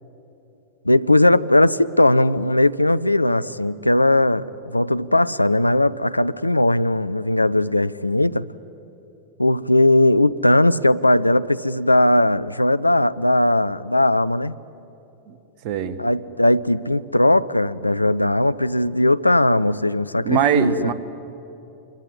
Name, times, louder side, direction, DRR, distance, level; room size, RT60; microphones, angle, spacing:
voice 1, 0.8-8.5 9.4-14.6 16.0-20.9, left 1 dB, 85° left, 0.5 m, -18 dB
voice 2, 15.6-16.0 20.2-20.9, right 7 dB, 45° right, 1.4 m, -21 dB
27.0 x 22.5 x 9.9 m
figure-of-eight pair, 90°, 0 cm